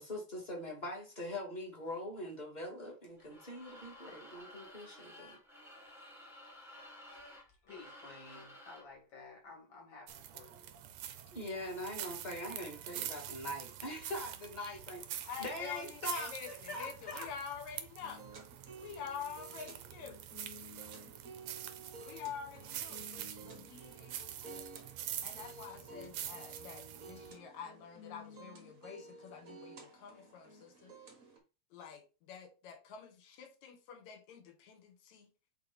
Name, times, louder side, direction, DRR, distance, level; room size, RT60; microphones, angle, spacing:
voice 1, 0.0-5.4 11.3-15.0 15.4-17.3, left 1 dB, 15° left, 2.0 m, -42 dB
sound 1, 3.2-8.9, left 1 dB, ahead, 1.0 m, -54 dB
voice 2, 7.6-10.7, left 3 dB, 55° left, 3.1 m, -53 dB
sound 2, 10.1-27.3, right 11 dB, 75° right, 1.3 m, -46 dB
voice 3, 15.3-18.2 18.8-20.2 22.0-24.7 25.2-31.0 31.7-35.3, left 7 dB, 75° left, 2.5 m, -47 dB
sound 3, 18.0-31.4, right 2 dB, 55° right, 0.9 m, -53 dB
7.5 x 3.4 x 4.2 m
omnidirectional pair, 3.3 m